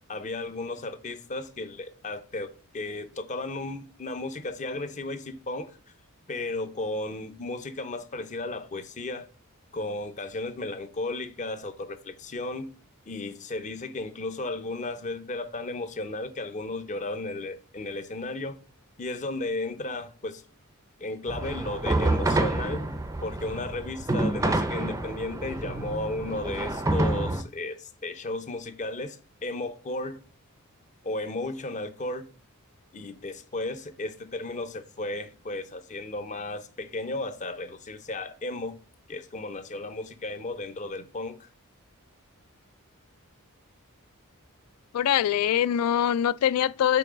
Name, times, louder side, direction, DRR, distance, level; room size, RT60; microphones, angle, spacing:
voice 1, 0.0-5.8 6.3-9.3 9.7-12.7 13.1-18.6 19.0-20.4 21.0-22.9 23.2-30.2 31.0-32.3 32.9-38.8 39.1-41.5, left 2 dB, 35° left, 0.6 m, -34 dB
sound 1, 21.3-27.4, right 2 dB, 15° right, 0.5 m, -28 dB
voice 2, 44.9-47.0, left 10 dB, 75° left, 0.3 m, -23 dB
5.7 x 3.8 x 5.0 m
head